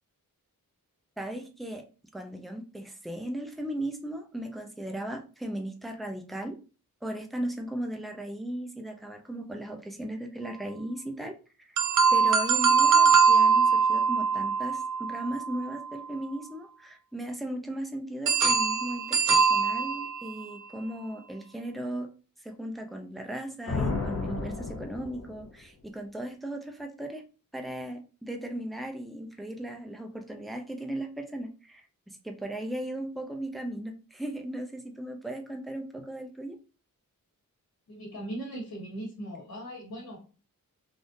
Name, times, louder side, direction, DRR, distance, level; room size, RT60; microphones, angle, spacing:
voice 1, 1.2-1.8 2.1-6.6 7.0-11.3 11.6-11.8 12.1-22.1 22.4-27.2 27.5-36.6, right 1 dB, ahead, 4 dB, 0.5 m, -37 dB
sound 1, 11.8-15.8 18.3-20.6, right 5 dB, 60° right, 0.5 m, -23 dB
sound 2, 23.7-25.6, left 3 dB, 45° left, 0.7 m, -32 dB
voice 2, 37.9-40.2, right 1 dB, 75° left, -4 dB, 1.4 m, -39 dB
3.5 x 2.5 x 2.6 m, 0.35 s
wide cardioid pair, 105°, 35 cm